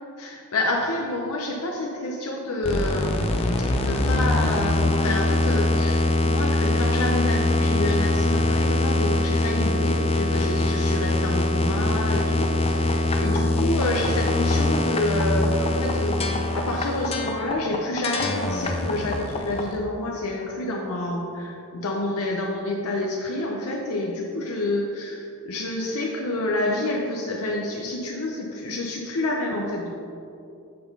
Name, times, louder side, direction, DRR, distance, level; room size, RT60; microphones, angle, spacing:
voice 1, 0.2-29.9, left 2 dB, 85° left, -1 dB, 0.7 m, -28 dB
sound 1, 2.6-19.8, left 1 dB, 25° left, 0.5 m, -23 dB
6.7 x 3.9 x 5.4 m, 2.6 s
head